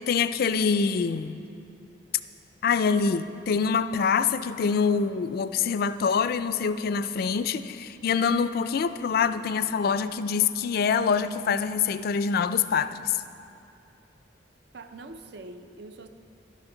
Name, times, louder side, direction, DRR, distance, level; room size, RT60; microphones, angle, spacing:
voice 1, 0.0-1.4 2.6-13.2, left 6 dB, 55° left, 13 dB, 0.3 m, -25 dB
voice 2, 14.7-16.1, right 2 dB, 65° right, 9 dB, 0.6 m, -43 dB
11.5 x 10.5 x 3.9 m, 2.7 s
head